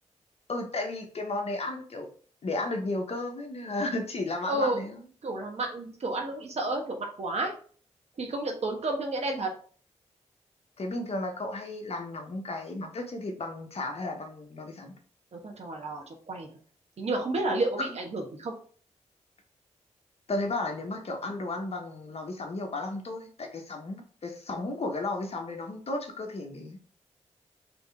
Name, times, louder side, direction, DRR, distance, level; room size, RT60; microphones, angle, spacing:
voice 1, 0.5-2.1 2.4-5.0 10.8-14.9 20.3-26.8, left 2 dB, 55° left, 3 dB, 1.1 m, -34 dB
voice 2, 4.5-4.8 5.2-7.5 8.2-9.5 15.3-16.5 17.0-18.5, right 2 dB, 60° right, 2 dB, 1.3 m, -31 dB
4.0 x 3.5 x 3.5 m, 0.44 s
cardioid pair, 55°, 12 cm